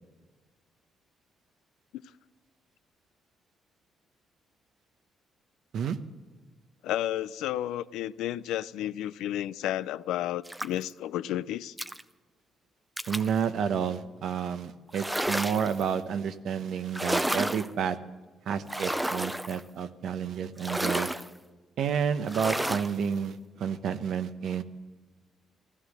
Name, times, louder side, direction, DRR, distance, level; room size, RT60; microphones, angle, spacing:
voice 1, 6.8-11.7, left 13 dB, 90° left, 0.4 m, -32 dB
sound 1, 10.5-10.9 11.8-12.0 13.0-13.3 14.9-15.8 16.9-17.7 18.7-19.6 20.6-21.3 22.3-22.9, right 1 dB, 10° right, 0.6 m, -31 dB
voice 2, 13.1-18.0 18.5-21.1 21.8-24.6, right 7 dB, 70° right, 0.9 m, -30 dB
15.0 x 14.0 x 6.5 m
cardioid pair, 90°, 0 cm